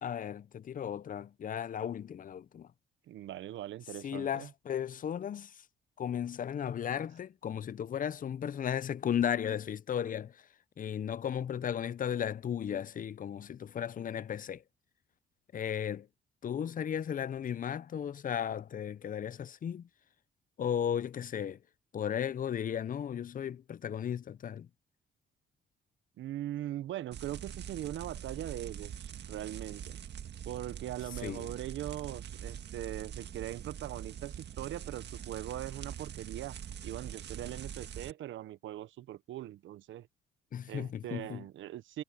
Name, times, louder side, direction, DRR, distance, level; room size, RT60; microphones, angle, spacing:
voice 1, 0.0-2.7 4.0-5.6 6.0-10.5 10.8-14.6 15.5-16.1 16.4-19.9 20.6-21.6 21.9-24.7 31.2-31.5 40.5-41.4, left 9 dB, 45° left, 0.6 m, -35 dB
voice 2, 3.1-4.5 26.2-30.0 30.5-36.6 36.8-40.1 40.7-42.0, right 13 dB, 75° right, 0.9 m, -41 dB
sound 1, 27.1-38.1, right 9 dB, 60° right, 1.7 m, -44 dB
cardioid pair, 90°, 20 cm